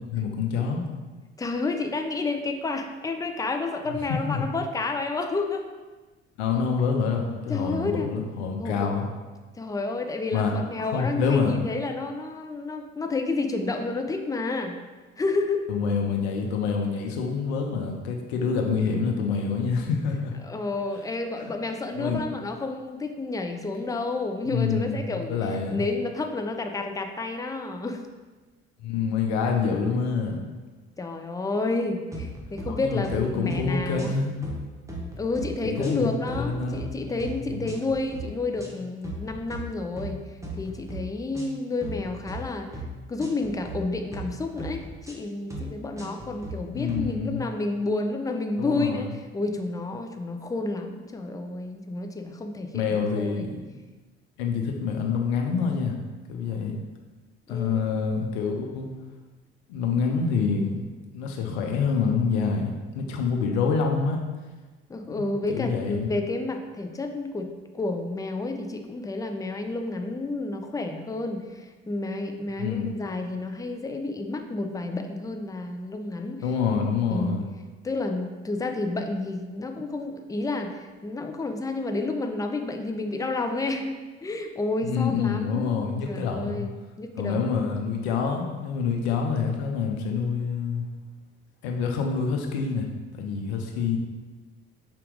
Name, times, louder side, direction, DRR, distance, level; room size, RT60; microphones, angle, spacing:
voice 1, 0.1-0.8 3.9-4.5 6.4-9.1 10.3-10.5 10.9-11.5 15.7-20.3 21.4-21.5 22.0-22.2 24.5-25.8 28.8-30.4 32.7-34.3 35.6-36.9 37.5-37.8 46.7-47.5 48.6-49.1 52.7-53.6 54.4-56.0 56.3-56.8 57.5-58.9 59.7-60.9 61.1-64.2 65.2-66.1 72.6-72.9 76.4-77.5 84.8-86.7 87.2-90.9 91.6-92.9 93.1-94.0, left 5 dB, 80° left, 2 dB, 0.7 m, -27 dB
voice 2, 1.4-5.7 7.5-8.1 8.6-8.9 9.6-14.8 15.2-15.7 20.4-28.0 31.0-34.1 35.2-40.2 40.6-42.7 43.1-44.8 45.1-53.5 57.5-57.8 64.9-67.5 67.7-76.4 77.1-77.4 77.8-86.7 87.0-87.5, left 3 dB, 10° left, 5 dB, 0.5 m, -30 dB
sound 1, 32.1-32.7 33.0-33.2 33.5-34.2 34.4-35.5 35.8-36.8 37.2-37.4 37.7-38.2 38.6-38.8 39.0-39.6 40.0-40.1 40.4-41.0 41.3-41.5 41.8-42.4 42.7-42.9 43.2-43.8 44.1-44.3 44.6-45.1 45.5-45.7 46.0-46.5 46.9-47.1, right 2 dB, 10° right, 1.0 m, -37 dB
5.0 x 2.9 x 3.5 m, 1.3 s
hypercardioid pair, 60°, 32 cm